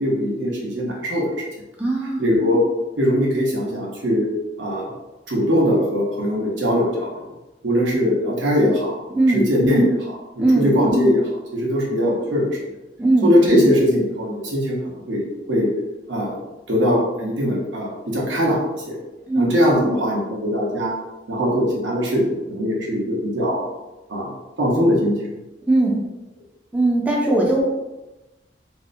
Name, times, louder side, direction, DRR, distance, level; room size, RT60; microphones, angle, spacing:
voice 1, 0.0-1.3 2.2-2.6 3.0-4.3 4.6-4.9 5.3-7.2 7.6-9.0 9.3-12.5 13.2-15.7 16.1-16.4 16.7-18.6 18.9-19.0 19.3-20.9 21.3-23.6 24.1-24.3 24.6-25.1, equal, 90° right, -3 dB, 0.8 m, -20 dB
voice 2, 1.8-2.2 9.2-9.5 10.4-10.7 13.0-13.3 19.3-19.5 25.7-26.0 26.7-27.7, right 2 dB, 10° right, -4 dB, 0.3 m, -18 dB
2.6 x 2.0 x 2.5 m, 1.0 s
head